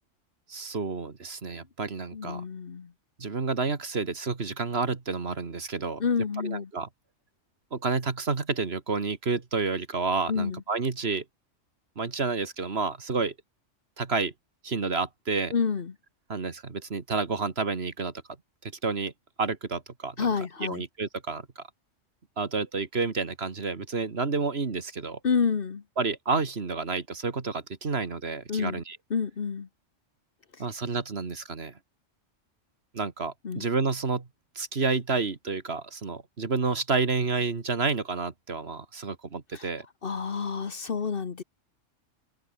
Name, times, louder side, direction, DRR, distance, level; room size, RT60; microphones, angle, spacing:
voice 1, 0.5-2.4 3.2-6.0 6.4-6.9 7.7-11.2 12.0-13.3 14.0-14.3 14.6-15.5 16.3-18.1 18.6-19.1 19.4-20.3 20.6-21.6 22.4-25.2 26.0-29.0 30.6-31.7 32.9-34.3 34.6-39.9, right 4 dB, 55° right, 2.1 m, -30 dB
voice 2, 2.1-2.9 6.0-6.7 10.3-10.6 15.5-15.9 20.2-20.8 25.2-25.8 28.5-28.8 29.1-29.7 33.4-33.6 39.5-39.7 40.0-41.4, left 6 dB, 50° left, 1.2 m, -29 dB
omnidirectional pair, 1.3 m